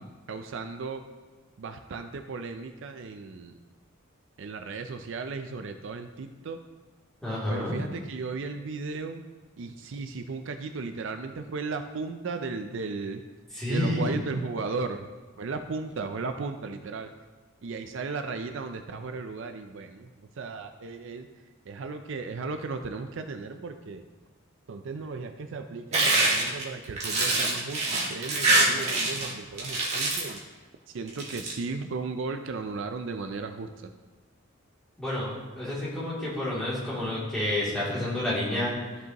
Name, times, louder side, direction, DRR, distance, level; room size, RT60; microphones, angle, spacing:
voice 1, 0.3-1.0 1.6-3.6 4.4-6.6 7.5-9.2 9.6-13.2 13.7-15.1 15.4-17.1 17.6-20.1 20.4-21.3 21.7-24.0 24.7-30.4 30.9-33.7, right 4 dB, 60° right, 7 dB, 0.4 m, -35 dB
voice 2, 7.2-7.8 13.5-14.2 35.0-35.3 35.6-38.7, left 1 dB, ahead, -10 dB, 2.8 m, -29 dB
sound 1, 25.9-29.3 29.6-30.4 31.1-31.5, right 2 dB, 30° right, 1.7 m, -25 dB
13.0 x 5.4 x 3.0 m, 1.4 s
head